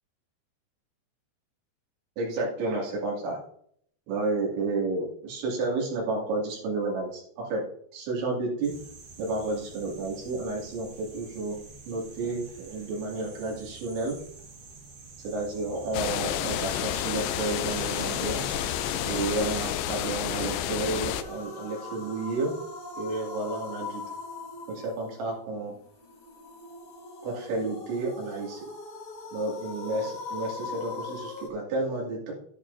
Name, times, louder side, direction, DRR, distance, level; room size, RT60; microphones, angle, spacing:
voice 1, 2.2-3.4 4.1-7.6 7.9-8.7 9.2-11.6 11.9-14.1 15.2-18.4 19.1-22.5 22.9-24.0 24.7-25.7 27.2-28.6 29.3-32.3, right 2 dB, 85° right, -3 dB, 4.9 m, -31 dB
sound 1, 8.6-19.7, right 4 dB, 55° right, 1.5 m, -47 dB
sound 2, 15.9-21.2, left 11 dB, 90° left, 3.0 m, -30 dB
sound 3, 20.4-31.5, left 3 dB, 50° left, 1.9 m, -41 dB
11.0 x 10.5 x 2.7 m, 0.63 s
omnidirectional pair, 5.2 m